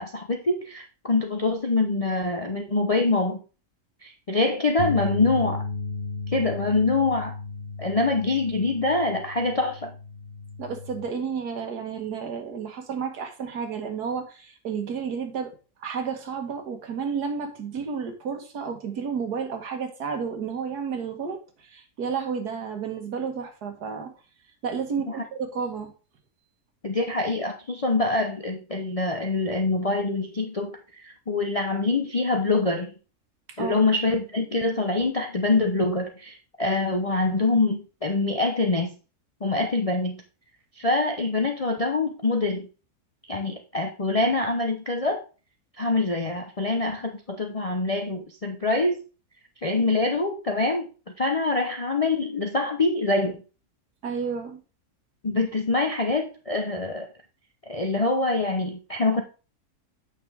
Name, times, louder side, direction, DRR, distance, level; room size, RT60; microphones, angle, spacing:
voice 1, 0.0-3.4 4.0-5.6 6.3-7.3 7.8-9.9 25.1-25.2 26.8-32.9 33.6-39.0 39.4-40.2 40.8-42.7 43.3-45.2 45.8-49.0 49.6-53.4 55.2-57.1 57.7-59.2, left 3 dB, 40° left, 3 dB, 0.5 m, -25 dB
sound 1, 4.8-11.0, left 4 dB, 55° left, 0.9 m, -34 dB
voice 2, 10.6-15.5 15.8-24.1 24.6-25.9 33.5-33.7 54.0-54.6, right 6 dB, 75° right, 6 dB, 1.8 m, -31 dB
8.5 x 5.9 x 3.5 m, 0.35 s
omnidirectional pair, 1.7 m